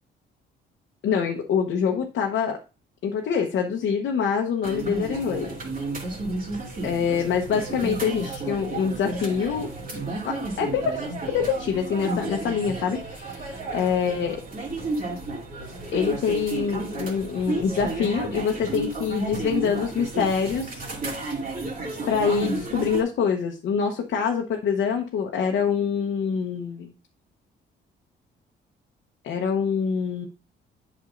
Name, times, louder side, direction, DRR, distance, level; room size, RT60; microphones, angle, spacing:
voice 1, 1.0-2.6 3.0-5.5 6.8-9.7 10.2-14.4 15.9-20.9 22.1-26.9 29.2-30.3, left 6 dB, 70° left, 2 dB, 0.9 m, -25 dB
sound 1, 4.6-23.0, right 2 dB, 45° right, 2.5 m, -32 dB
8.3 x 6.2 x 2.5 m, 0.32 s
cardioid pair, 90°, 20 cm